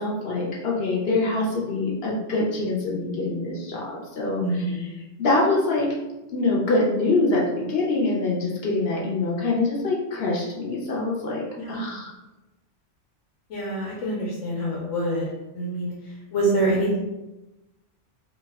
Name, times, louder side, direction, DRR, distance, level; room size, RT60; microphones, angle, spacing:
voice 1, 0.0-4.4 5.2-5.9 6.3-12.1, left 2 dB, 60° left, -4 dB, 0.8 m, -24 dB
voice 2, 4.4-4.9 11.6-12.0 13.5-15.3 15.5-17.0, right 1 dB, 85° left, -4 dB, 1.0 m, -26 dB
2.8 x 2.1 x 3.4 m, 1.0 s
omnidirectional pair, 1.3 m